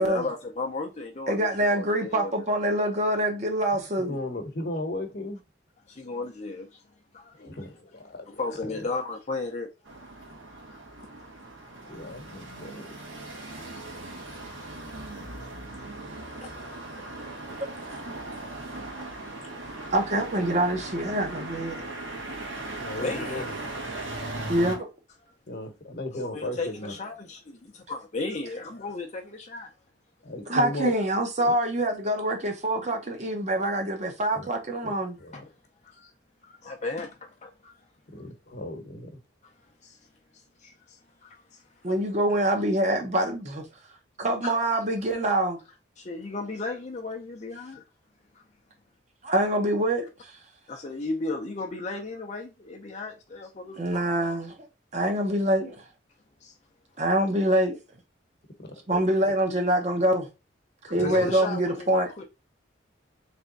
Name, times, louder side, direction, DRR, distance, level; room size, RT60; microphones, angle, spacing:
voice 1, 0.0-2.6 5.9-6.8 7.1-7.5 8.4-9.7 10.7-10.8 14.3-14.4 14.9-15.3 15.7-15.8 16.1-16.5 17.0-17.5 17.9-18.1 18.7-19.4 19.7-19.9 21.7-21.8 23.0-23.5 26.1-27.4 27.9-29.7 35.3-35.5 35.8-36.1 36.4-37.8 39.4-39.5 39.8-40.0 40.3-41.9 44.4-44.6 46.0-47.8 48.3-48.4 50.7-54.1 56.4-56.6 60.9-62.2, left 3 dB, 35° left, 0.6 m, -36 dB
voice 2, 1.3-4.2 18.0-18.2 19.9-21.8 24.5-24.9 30.5-35.2 41.8-43.6 44.2-45.6 49.2-50.3 53.8-54.5 54.9-55.8 57.0-57.8 58.9-60.3 60.8-62.1, right 1 dB, 35° right, 0.8 m, -25 dB
voice 3, 4.0-5.4 7.4-8.4 11.9-12.9 22.8-23.6 25.5-26.9 30.2-30.9 31.4-31.5 34.3-34.5 34.8-35.4 38.1-39.2 58.6-59.3 60.9-61.4, left 1 dB, 55° left, 1.0 m, -36 dB
sound 1, 9.9-24.8, right 2 dB, 75° right, 1.5 m, -38 dB
3.5 x 3.4 x 3.9 m
head